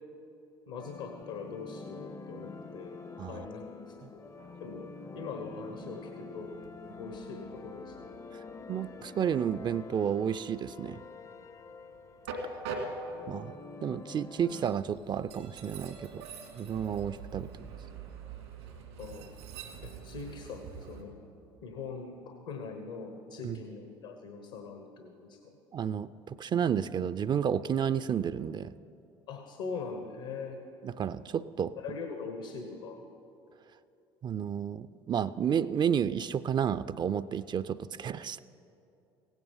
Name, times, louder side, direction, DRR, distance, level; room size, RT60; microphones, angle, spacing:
voice 1, 0.7-3.0 3.2-3.7 4.1-4.2 4.6-6.5 7.0-8.3 19.0-19.3 19.8-21.2 21.6-25.4 29.3-30.6 31.8-33.0, left 4 dB, 75° left, 4 dB, 1.1 m, -42 dB
sound 1, 0.8-14.8, left 4 dB, 25° left, 0.5 m, -47 dB
Train, 4.2-21.0, right 4 dB, 85° right, 2.0 m, -45 dB
voice 2, 8.7-11.0 13.3-16.3 16.6-17.5 23.4-23.6 25.7-28.7 30.8-31.7 34.2-38.4, right 8 dB, 35° right, 15 dB, 0.4 m, -31 dB
16.0 x 9.7 x 5.6 m, 2.8 s
hypercardioid pair, 65°, 13 cm